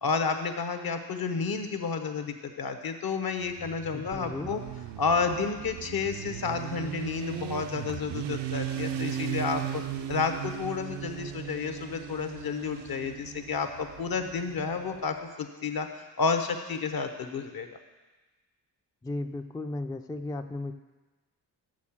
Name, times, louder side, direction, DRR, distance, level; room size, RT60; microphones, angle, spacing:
voice 1, 0.0-4.6 5.0-9.8 10.1-17.7, left 5 dB, 60° left, 7 dB, 1.0 m, -31 dB
Motorcycle, 3.4-15.1, right 10 dB, 85° right, 0.6 m, -37 dB
voice 2, 3.9-4.5 19.0-20.7, left 2 dB, 10° left, 7 dB, 0.3 m, -35 dB
7.0 x 6.3 x 7.3 m, 1.2 s
cardioid pair, 80°, 41 cm